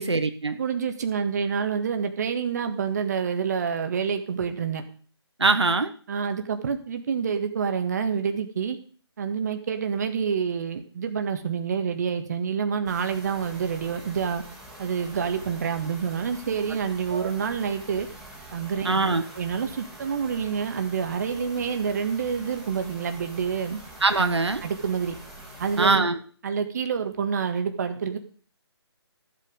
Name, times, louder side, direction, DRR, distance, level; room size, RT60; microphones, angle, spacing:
voice 1, 0.0-0.6 5.4-5.9 17.1-17.3 18.8-19.2 24.0-24.6 25.8-26.2, right 3 dB, 75° right, 8 dB, 1.4 m, -22 dB
voice 2, 0.6-4.8 6.1-8.8 9.2-14.4 14.8-18.1 18.5-18.9 19.3-23.8 24.6-25.2 25.6-26.1 26.4-28.2, right 6 dB, 40° right, 7 dB, 1.6 m, -27 dB
sound 1, 12.8-25.9, right 1 dB, 5° right, 2.4 m, -45 dB
14.5 x 8.0 x 5.3 m, 0.43 s
figure-of-eight pair, 150°, 14 cm